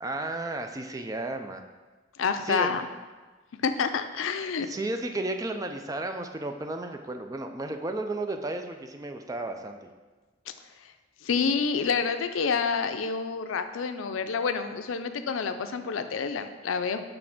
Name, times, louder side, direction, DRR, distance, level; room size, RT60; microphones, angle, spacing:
voice 1, 0.0-1.6 2.4-2.8 4.7-9.9, right 2 dB, 20° right, 6 dB, 0.4 m, -33 dB
voice 2, 2.2-2.8 3.6-4.7 11.2-17.0, left 5 dB, 90° left, 9 dB, 0.5 m, -28 dB
6.2 x 3.3 x 5.9 m, 1.3 s
head